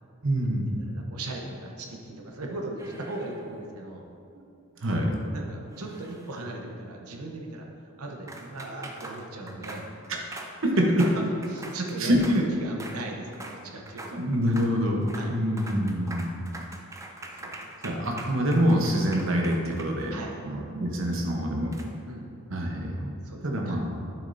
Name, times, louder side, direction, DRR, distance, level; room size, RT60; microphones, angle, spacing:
voice 1, 0.2-0.8 4.8-5.1 10.1-10.2 10.6-10.9 12.0-12.2 14.1-16.4 17.8-20.1 20.4-21.8 22.5-23.1 23.4-24.1, equal, 60° right, 0 dB, 1.0 m, -26 dB
voice 2, 0.7-4.0 5.3-7.7 8.0-9.9 11.0-11.2 11.5-14.2 15.1-15.3 16.0-16.3 17.4-17.7 20.1-20.4 22.1-22.3 22.8-23.8, right 2 dB, 85° right, 1 dB, 0.9 m, -37 dB
sound 1, 2.8-3.6 5.7-6.6 8.3-12.4 12.8-13.0 13.3-13.6 13.9-14.2 14.4-14.7 15.0-15.3 15.6-20.3 21.7-21.9, right 2 dB, 15° right, 0.4 m, -43 dB
8.7 x 7.1 x 2.7 m, 2.6 s
head